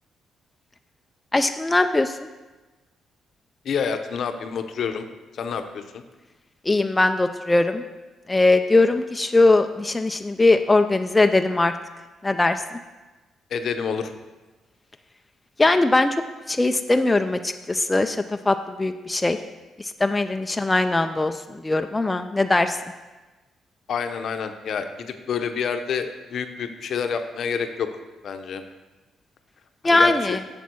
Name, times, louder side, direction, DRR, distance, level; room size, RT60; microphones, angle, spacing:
voice 1, 1.3-2.1 6.7-7.8 8.3-11.7 12.2-12.6 15.6-16.1 16.5-19.4 19.8-21.3 21.6-22.8 29.8-30.4, left 2 dB, 15° left, 6 dB, 0.5 m, -20 dB
voice 2, 3.6-5.1 5.3-6.0 13.5-14.1 23.9-27.9 28.2-28.6 29.8-30.4, left 6 dB, 60° left, 7 dB, 0.8 m, -28 dB
7.1 x 7.1 x 6.2 m, 1.2 s
cardioid pair, 90°, 0 cm